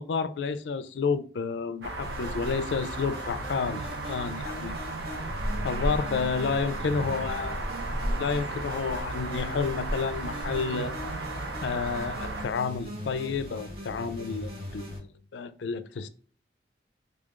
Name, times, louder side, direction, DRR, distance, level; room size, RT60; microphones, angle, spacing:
voice 1, 0.0-4.8 5.6-7.6 8.1-10.9 11.6-16.1, left 5 dB, 85° left, 0.4 m, -30 dB
sound 1, 1.8-12.5, right 1 dB, 90° right, 0.7 m, -34 dB
sound 2, 2.0-15.0, equal, 60° right, 1.3 m, -40 dB
3.7 x 3.4 x 2.4 m
head